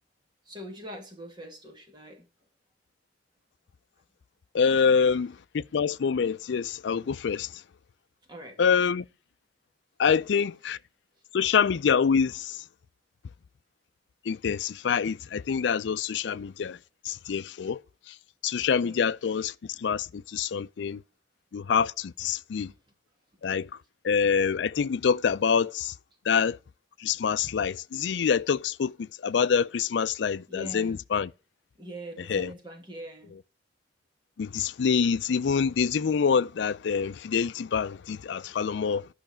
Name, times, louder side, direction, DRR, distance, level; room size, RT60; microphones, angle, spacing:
voice 1, 0.5-2.2 8.3-8.6 18.8-19.0 22.6-22.8 30.5-31.0 31.8-33.3, equal, 25° right, 2.2 m, -42 dB
voice 2, 4.5-7.6 8.6-9.0 10.0-10.8 11.3-12.6 14.3-16.8 17.0-17.8 18.1-18.2 18.4-21.0 21.5-22.7 23.4-23.7 24.0-26.0 26.2-26.6 27.0-31.3 32.3-32.5 34.4-39.1, left 6 dB, 75° left, 0.4 m, -26 dB
11.5 x 5.7 x 5.1 m
head